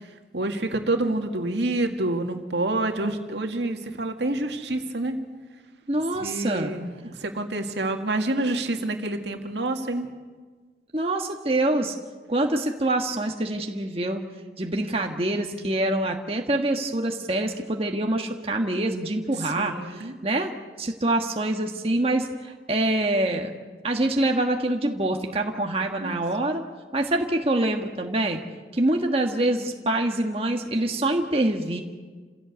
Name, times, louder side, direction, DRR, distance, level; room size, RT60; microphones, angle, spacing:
voice 1, 0.3-5.2 6.2-10.1 19.4-20.2 26.0-26.1, right 2 dB, 75° right, 4 dB, 2.2 m, -28 dB
voice 2, 5.9-6.7 10.9-11.9 12.3-14.2 14.6-20.5 20.8-23.5 23.8-26.6 26.9-28.4 28.7-31.8, right 1 dB, 30° right, 2 dB, 1.5 m, -25 dB
28.0 x 16.5 x 8.2 m, 1.5 s
head